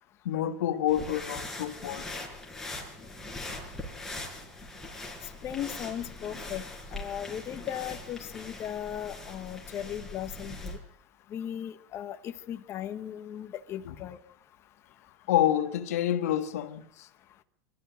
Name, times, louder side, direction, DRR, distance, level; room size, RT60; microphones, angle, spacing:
voice 1, 0.2-2.2 13.8-13.9 15.3-17.1, left 11 dB, 85° left, 1.5 m, -28 dB
sound 1, 0.9-10.8, left 2 dB, 5° left, 4.9 m, -41 dB
voice 2, 5.4-6.6 6.9-10.8 11.3-14.2, left 10 dB, 35° left, 1.2 m, -37 dB
23.5 x 13.5 x 9.0 m
supercardioid pair, 140°, 8 cm